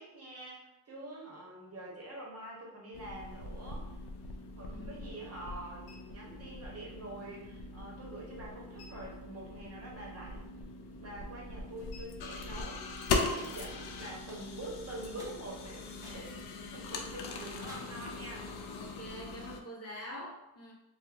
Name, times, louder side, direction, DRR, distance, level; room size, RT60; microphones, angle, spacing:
voice 1, 0.0-4.0 4.6-10.5 11.0-12.9 13.3-18.5, right 1 dB, 40° right, -3 dB, 0.8 m, -46 dB
sound 1, 2.9-19.6, left 3 dB, 90° left, 0.5 m, -40 dB
voice 2, 4.7-5.2 18.7-20.7, equal, 40° left, -3 dB, 0.7 m, -45 dB
sound 2, 13.4-13.6 14.3-14.7 15.2-15.4 16.0-16.3 16.8-16.9 17.7-18.1, equal, 10° right, 0.5 m, -52 dB
4.4 x 2.0 x 2.4 m, 0.95 s
wide cardioid pair, 165°, 38 cm